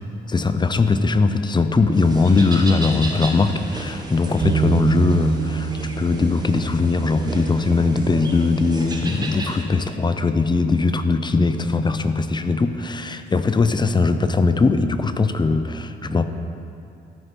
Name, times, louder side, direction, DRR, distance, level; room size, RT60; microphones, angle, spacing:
voice 1, 0.3-16.3, left 3 dB, 20° left, 10 dB, 0.5 m, -20 dB
sound 1, 1.9-9.6, right 2 dB, 20° right, 1.3 m, -33 dB
Bass guitar, 4.4-10.7, right 6 dB, 50° right, 0.8 m, -28 dB
13.5 x 6.5 x 4.6 m, 2.5 s
cardioid pair, 90°, 20 cm